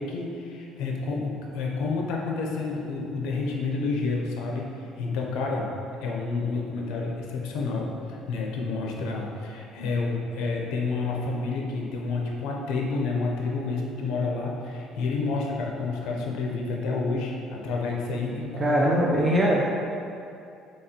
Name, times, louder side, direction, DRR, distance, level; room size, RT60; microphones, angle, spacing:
voice 1, 0.0-5.7 6.0-19.0, left 3 dB, 75° left, -1 dB, 0.5 m, -29 dB
voice 2, 18.6-19.6, right 1 dB, 30° right, -4 dB, 0.4 m, -21 dB
4.1 x 2.9 x 2.8 m, 2.6 s
supercardioid pair, 90°, 0 cm